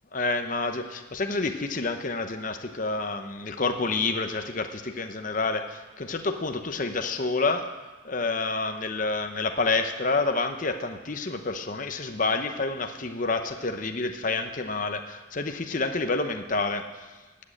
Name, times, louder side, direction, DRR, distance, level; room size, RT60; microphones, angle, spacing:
voice 1, 0.1-7.7 8.0-17.1, left 3 dB, 40° left, 6 dB, 0.8 m, -28 dB
13.0 x 8.7 x 8.5 m, 1.2 s
head